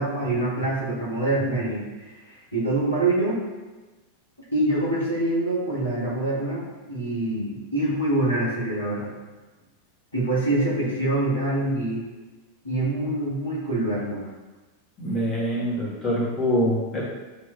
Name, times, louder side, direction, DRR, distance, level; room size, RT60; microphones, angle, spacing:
voice 1, 0.0-1.8 2.5-3.4 4.5-9.1 10.1-12.1 12.6-14.3, right 2 dB, 80° left, -7 dB, 1.5 m, -25 dB
voice 2, 15.0-17.0, equal, 30° left, -6 dB, 1.3 m, -24 dB
5.7 x 3.0 x 2.3 m, 1.2 s
figure-of-eight pair, 90°, 0 cm